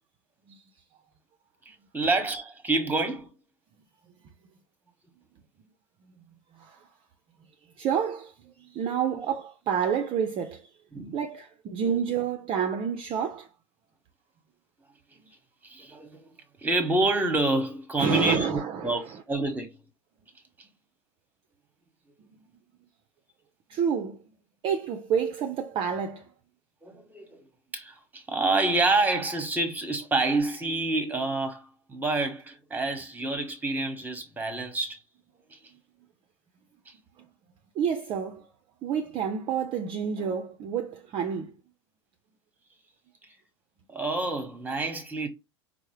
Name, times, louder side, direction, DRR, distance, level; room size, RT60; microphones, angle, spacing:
voice 1, 1.7-3.3 10.9-11.2 11.8-11.9 15.6-16.3 16.6-19.7 26.8-27.4 27.7-35.0 35.5-35.6 36.9-37.0 43.9-45.3, right 2 dB, 10° right, 1.0 m, -28 dB
voice 2, 7.8-10.7 11.1-13.5 18.0-19.2 23.7-24.2 24.6-26.3 37.8-38.5 38.8-41.5, right 7 dB, 35° right, 0.5 m, -29 dB
4.4 x 2.0 x 3.1 m
hypercardioid pair, 95°, 16 cm